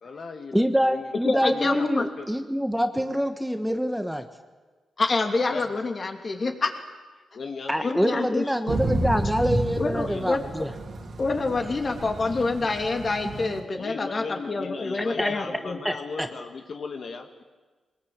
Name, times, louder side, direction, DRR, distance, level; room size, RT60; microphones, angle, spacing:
voice 1, 0.0-1.0 1.5-1.6 2.0-2.1 5.5-5.6 7.4-8.3 10.1-10.3 13.8-17.4, left 4 dB, 60° left, 5 dB, 1.6 m, -37 dB
voice 2, 0.5-4.2 7.7-10.7 15.2-15.3 15.8-16.3, equal, ahead, 7 dB, 1.3 m, -26 dB
voice 3, 1.2-2.1 5.0-6.7 7.8-8.5 9.5-10.7 11.2-15.8, left 3 dB, 40° left, 4 dB, 3.0 m, -27 dB
Thunder / Rain, 8.7-13.6, right 1 dB, 65° right, 3.1 m, -31 dB
21.5 x 20.0 x 8.9 m, 1.3 s
cardioid pair, 85°, 0 cm